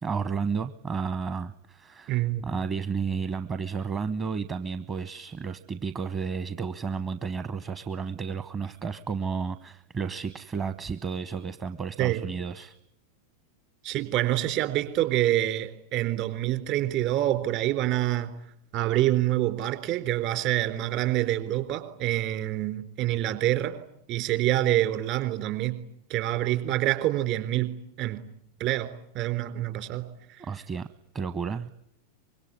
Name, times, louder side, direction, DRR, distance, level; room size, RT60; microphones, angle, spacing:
voice 1, 0.0-12.7 30.4-30.9 31.1-31.7, right 5 dB, 25° right, 12 dB, 1.0 m, -32 dB
voice 2, 2.1-2.4 12.0-12.3 13.8-18.3 18.7-23.8 24.1-25.8 26.1-27.7 28.0-28.2 28.6-30.1, right 14 dB, 45° right, 9 dB, 3.7 m, -26 dB
25.0 x 22.5 x 9.7 m, 0.72 s
figure-of-eight pair, 90°, 0 cm